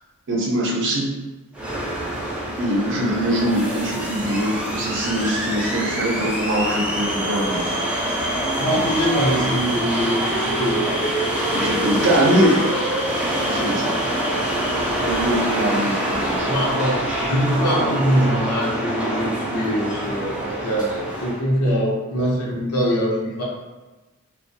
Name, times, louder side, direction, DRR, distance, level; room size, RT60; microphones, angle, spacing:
voice 1, 0.3-1.1 2.6-7.6 8.6-8.9 11.5-12.6 13.4-13.9 15.0-16.5, right 1 dB, 55° right, -2 dB, 0.6 m, -22 dB
sound 1, 1.5-21.4, right 1 dB, 5° right, 0.3 m, -25 dB
voice 2, 8.6-11.0 16.4-23.4, equal, 90° left, -3 dB, 0.7 m, -23 dB
2.4 x 2.1 x 2.6 m, 1.2 s
head